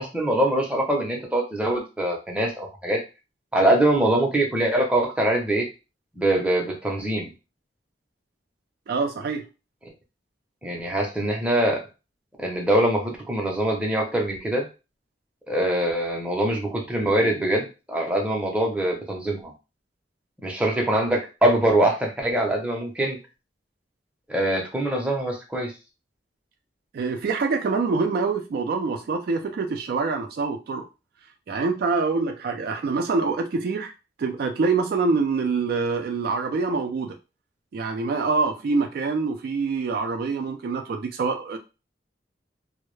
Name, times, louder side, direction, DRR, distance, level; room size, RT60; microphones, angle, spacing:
voice 1, 0.0-3.0 3.5-5.7 6.2-7.3 10.6-11.8 12.4-14.7 15.5-19.5 20.4-23.2 24.3-25.7, right 1 dB, 5° right, 0 dB, 0.6 m, -23 dB
voice 2, 8.9-9.5 26.9-30.9 31.5-33.9 34.2-37.2 37.7-41.6, right 4 dB, 55° right, 5 dB, 0.3 m, -25 dB
2.2 x 2.0 x 3.0 m, 0.29 s
head